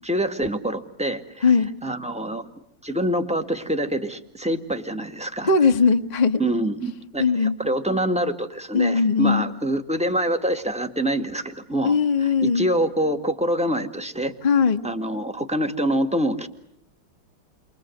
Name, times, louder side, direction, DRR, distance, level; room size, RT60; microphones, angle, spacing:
voice 1, 0.0-1.5 1.8-2.5 2.8-5.5 6.4-14.3 14.8-16.5, right 1 dB, 5° right, 6 dB, 1.7 m, -25 dB
voice 2, 5.4-6.4 7.2-7.6 8.7-9.4 11.8-12.7 14.4-14.8, left 5 dB, 25° left, 5 dB, 1.1 m, -19 dB
30.0 x 24.5 x 7.9 m, 0.71 s
omnidirectional pair, 2.2 m